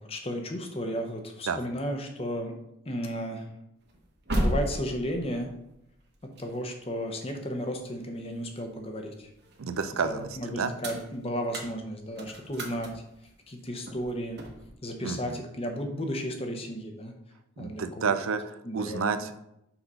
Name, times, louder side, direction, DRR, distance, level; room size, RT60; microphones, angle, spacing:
voice 1, 0.0-2.6 2.9-3.5 4.4-5.5 6.4-9.3 10.0-13.0 13.5-14.5 14.8-17.1 17.6-18.3 18.6-19.2, equal, 30° left, 4 dB, 0.9 m, -34 dB
sound 1, 3.8-8.9 9.3-14.7, right 1 dB, 55° right, 1.1 m, -35 dB
voice 2, 9.6-10.7 15.0-15.4 17.6-19.4, right 5 dB, 90° right, 10 dB, 0.5 m, -30 dB
5.8 x 4.1 x 5.4 m, 0.82 s
head